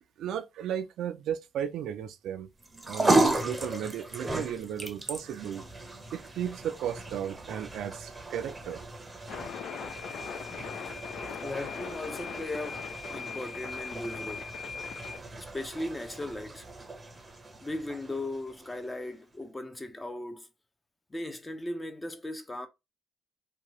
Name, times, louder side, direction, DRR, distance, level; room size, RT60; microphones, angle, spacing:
voice 1, 0.2-2.5 2.8-5.6 6.1-8.8, right 9 dB, 80° right, 0.3 m, -35 dB
sound 1, 2.6-19.1, right 2 dB, 20° right, 0.7 m, -35 dB
sound 2, 9.3-15.2, left 7 dB, 70° left, 0.3 m, -40 dB
voice 2, 11.4-14.5 15.4-16.7 17.6-20.5 21.1-22.7, left 1 dB, 20° left, 0.6 m, -37 dB
2.8 x 2.2 x 2.9 m
cardioid pair, 90°, 0 cm